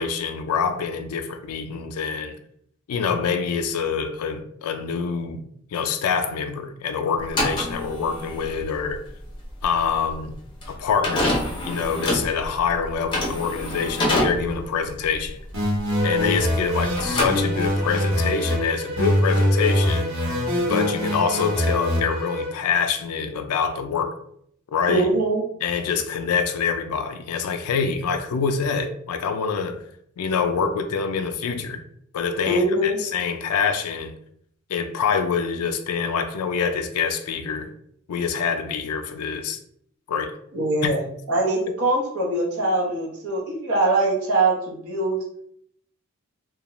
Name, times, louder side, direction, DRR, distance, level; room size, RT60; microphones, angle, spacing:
voice 1, 0.0-2.4 2.9-5.5 5.7-9.0 9.6-10.4 10.7-11.4 11.6-15.4 16.0-20.1 20.6-24.1 24.7-25.1 25.6-29.8 30.2-31.8 32.1-34.1 34.7-37.7 38.1-39.6 40.1-40.3 40.8-40.9, left 6 dB, 85° left, 0.4 m, -25 dB
sound 1, 7.2-16.7 16.9-17.9, left 1 dB, 20° left, 0.5 m, -27 dB
sound 2, 15.5-18.6 19.0-22.0, equal, 60° right, 1.0 m, -23 dB
Bowed string instrument, 15.9-22.6, left 1 dB, 25° right, 0.6 m, -32 dB
voice 2, 24.9-25.4 32.5-33.0 40.5-41.0 41.3-45.2, right 2 dB, 80° right, 0.8 m, -22 dB
2.3 x 2.2 x 2.9 m
head